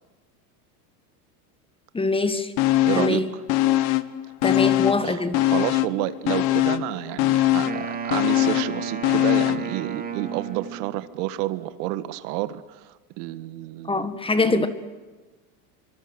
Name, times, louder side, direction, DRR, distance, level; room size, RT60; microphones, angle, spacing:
voice 1, 1.9-2.5 2.9-3.3 4.4-5.4 13.9-14.7, left 3 dB, 10° left, 11 dB, 1.8 m, -23 dB
sound 1, 2.6-3.2 3.5-5.1 5.3-9.7 10.1-10.2, left 15 dB, 50° left, 1.5 m, -22 dB
voice 2, 2.8-3.4 4.6-14.1 14.5-14.7, right 15 dB, 70° right, 13 dB, 1.8 m, -30 dB
Wind instrument woodwind instrument, 7.6-11.1, right 7 dB, 20° right, 3.6 m, -33 dB
25.0 x 25.0 x 8.0 m, 1.2 s
supercardioid pair, 135°, 48 cm